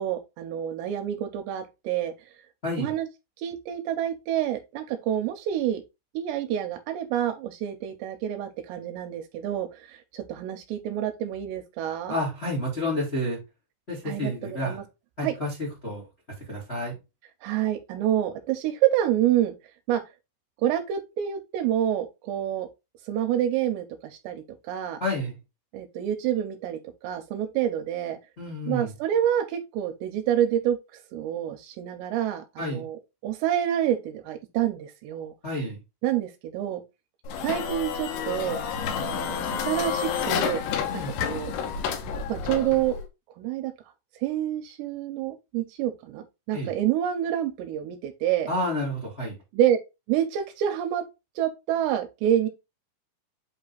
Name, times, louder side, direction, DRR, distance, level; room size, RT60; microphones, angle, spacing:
voice 1, 0.0-2.1 2.8-3.1 3.4-5.8 6.1-12.1 14.1-14.8 15.2-15.3 17.4-19.5 19.9-20.0 20.6-22.7 23.1-25.0 25.7-28.2 28.7-30.8 31.1-33.0 33.2-35.3 36.0-36.8 37.4-38.6 39.0-40.6 40.9-41.5 42.3-43.0 43.4-43.7 44.2-48.5 49.5-49.8 50.1-51.0 51.4-52.5, right 11 dB, 80° right, 2.7 m, -27 dB
voice 2, 2.6-2.9 12.1-13.4 13.9-14.8 15.2-16.0 16.4-16.9 25.0-25.4 28.4-28.9 32.6-32.8 35.4-35.8 40.9-41.1 46.5-46.7 48.5-49.3, left 1 dB, 40° left, 0.8 m, -30 dB
sound 1, 37.3-43.1, left 7 dB, 80° left, 3.3 m, -30 dB
8.1 x 3.3 x 4.0 m
omnidirectional pair, 5.4 m